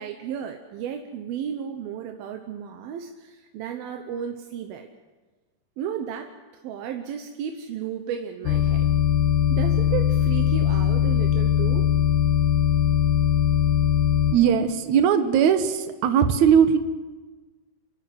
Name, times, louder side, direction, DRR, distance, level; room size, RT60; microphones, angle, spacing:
voice 1, 0.0-4.9 5.8-6.3 6.6-8.8 9.5-11.9, right 8 dB, 90° right, 5 dB, 2.9 m, -33 dB
sound 1, 8.4-14.3, left 9 dB, 65° left, 2.9 m, -20 dB
voice 2, 14.3-16.8, right 8 dB, 65° right, 9 dB, 2.2 m, -19 dB
27.0 x 13.0 x 7.7 m, 1.3 s
omnidirectional pair, 4.1 m